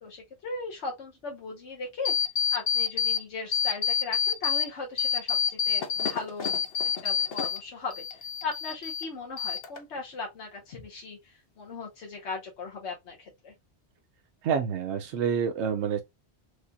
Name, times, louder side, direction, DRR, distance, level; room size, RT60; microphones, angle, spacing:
voice 1, 0.0-2.1 2.5-6.6 7.0-13.5, left 4 dB, 80° left, 1.2 m, -38 dB
sound 1, 2.0-3.2 3.5-4.7 5.0-7.6 7.9-9.1 9.4-10.0, left 7 dB, 65° left, 0.9 m, -27 dB
voice 2, 14.4-16.0, right 7 dB, 90° right, 0.9 m, -28 dB
4.8 x 2.7 x 2.2 m
omnidirectional pair, 1.1 m